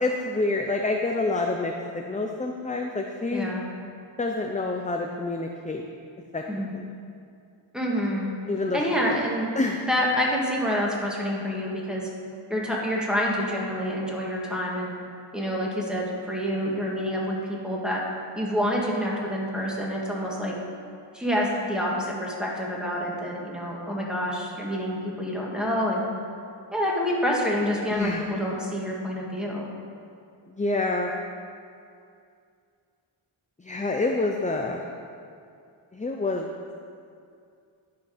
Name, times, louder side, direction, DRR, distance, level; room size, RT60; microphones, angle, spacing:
voice 1, 0.0-3.5 4.2-5.8 6.3-6.4 6.7-6.8 8.5-8.8 9.1-9.2 9.6-9.8 27.9-28.2 30.5-31.1 33.6-34.8 35.9-36.5, left 2 dB, 15° left, 2 dB, 0.4 m, -27 dB
voice 2, 3.3-3.7 6.5-6.7 7.7-8.3 8.7-9.5 9.9-12.1 12.5-14.9 15.3-18.0 18.4-20.5 21.1-26.0 26.7-29.7, equal, ahead, -3 dB, 1.7 m, -27 dB
10.5 x 5.8 x 5.0 m, 2.4 s
wide cardioid pair, 85°, 49 cm